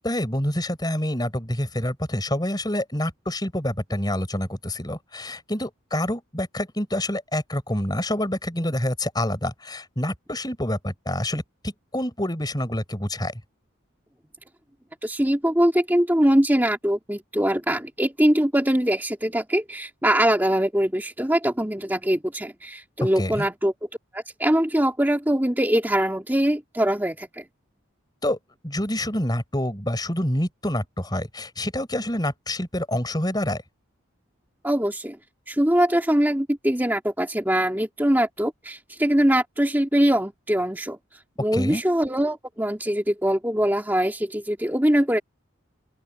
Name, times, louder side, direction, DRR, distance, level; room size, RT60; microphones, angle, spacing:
voice 1, 0.0-13.3 23.2-23.5 28.2-28.4 28.6-33.6 41.5-41.8, left 1 dB, 20° left, 4.8 m, -27 dB
voice 2, 15.0-23.7 24.1-27.4 34.6-35.2 35.5-45.2, equal, 10° right, 2.0 m, -22 dB
open air
head